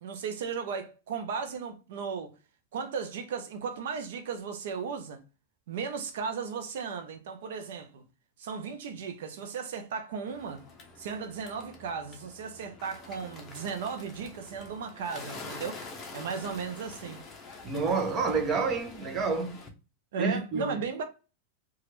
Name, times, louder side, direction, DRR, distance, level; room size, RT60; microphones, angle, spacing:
voice 1, 0.0-2.3 2.7-5.2 5.7-8.0 8.4-10.6 11.0-15.8 16.1-17.2 20.1-21.0, right 6 dB, 75° right, 0.6 m, -36 dB
Bird, 10.3-19.7, left 3 dB, 25° left, 0.7 m, -46 dB
voice 2, 17.6-19.6 20.2-20.7, right 4 dB, 25° right, 0.7 m, -29 dB
3.0 x 2.3 x 3.0 m
supercardioid pair, 150°, 0 cm